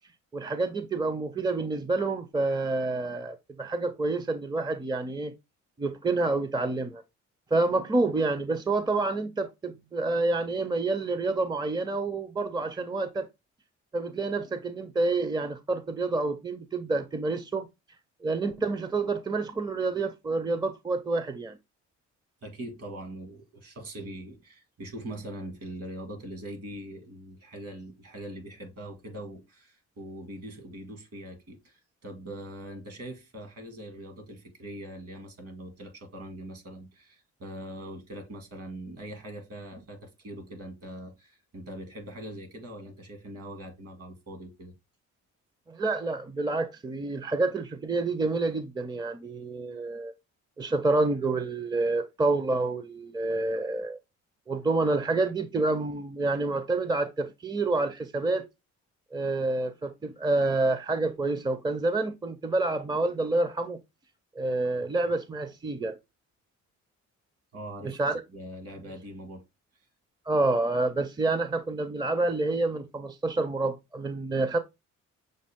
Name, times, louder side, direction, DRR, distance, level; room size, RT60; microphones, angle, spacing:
voice 1, 0.3-5.3 5.8-7.0 7.5-13.3 13.9-17.7 18.2-21.6 45.7-50.1 50.6-54.0 54.5-58.5 59.1-63.8 64.4-66.0 67.8-68.2 70.3-74.6, right 3 dB, 15° right, 0.5 m, -28 dB
voice 2, 22.4-44.7 51.8-51.9 64.8-64.9 67.5-68.0 68.3-69.4, right 1 dB, 55° right, 2.1 m, -42 dB
6.4 x 2.4 x 3.5 m
cardioid pair, 90°, 30 cm